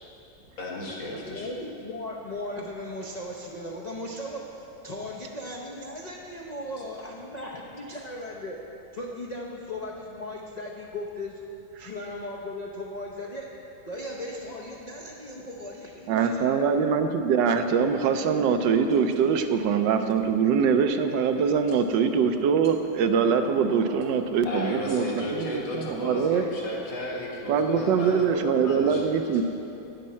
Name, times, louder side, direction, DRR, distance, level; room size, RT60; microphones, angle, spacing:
voice 1, 0.6-1.5 24.5-29.4, left 1 dB, 90° left, -4 dB, 2.5 m, -34 dB
voice 2, 1.1-8.6 8.9-11.4 11.8-13.5 13.8-16.5, left 1 dB, 65° left, -3 dB, 0.4 m, -37 dB
voice 3, 16.1-26.5 27.5-29.4, right 6 dB, 75° right, 7 dB, 1.2 m, -23 dB
11.0 x 9.3 x 4.3 m, 3.0 s
omnidirectional pair, 2.0 m